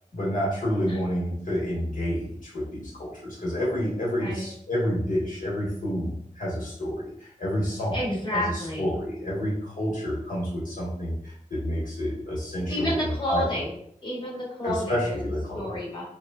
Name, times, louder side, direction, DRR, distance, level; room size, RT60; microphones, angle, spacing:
voice 1, 0.1-12.9 13.3-13.4 14.6-15.7, equal, 75° left, -5 dB, 1.1 m, -29 dB
voice 2, 7.9-8.9 12.7-13.7 14.0-15.2 15.5-16.0, left 1 dB, 35° left, -4 dB, 0.9 m, -30 dB
3.0 x 2.1 x 2.2 m, 0.68 s
wide cardioid pair, 80°, 14 cm